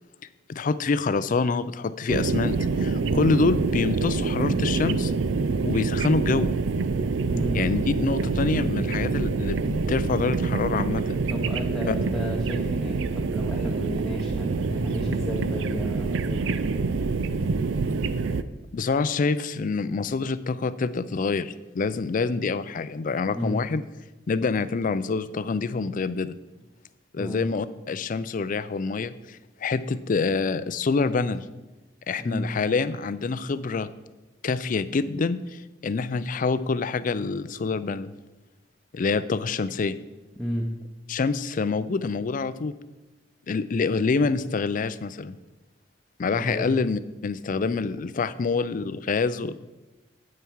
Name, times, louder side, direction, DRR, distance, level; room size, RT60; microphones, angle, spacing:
voice 1, 0.5-5.1 5.7-6.5 7.5-11.0 11.9-12.0 18.7-23.8 24.3-26.4 27.1-31.4 32.1-33.9 34.4-38.1 38.9-40.0 41.1-42.7 43.5-45.4 46.2-49.6, left 4 dB, 45° left, 14 dB, 0.4 m, -26 dB
sound 1, 2.1-18.4, right 4 dB, 80° right, 0.5 m, -26 dB
voice 2, 7.3-7.6 11.3-16.8 23.3-23.6 27.2-27.5 32.2-32.5 40.4-40.7 46.3-46.7, equal, ahead, -3 dB, 0.9 m, -32 dB
9.1 x 8.5 x 4.6 m, 1.1 s
head